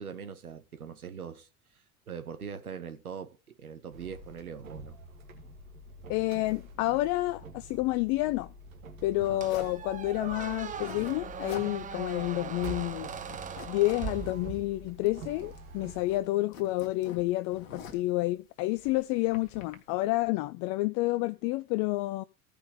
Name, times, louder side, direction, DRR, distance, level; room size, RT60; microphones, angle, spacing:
voice 1, 0.0-1.5 2.1-5.0 9.2-9.7, right 7 dB, 85° right, 1.0 m, -42 dB
sound 1, 3.9-16.2, right 2 dB, 70° right, 2.0 m, -47 dB
voice 2, 6.1-8.5 9.0-13.1 13.7-22.2, left 18 dB, 45° left, 0.4 m, -29 dB
Zipper (clothing), 9.4-9.8 10.6-11.2 11.4-11.7 12.1-12.2 12.5-13.0 13.2-14.4 15.1-15.7 16.0-18.1 18.7-19.8, left 7 dB, 65° left, 1.6 m, -45 dB
Squeak, 9.4-14.9, right 7 dB, 20° right, 0.6 m, -40 dB
15.5 x 5.3 x 3.8 m
figure-of-eight pair, 70°, 43 cm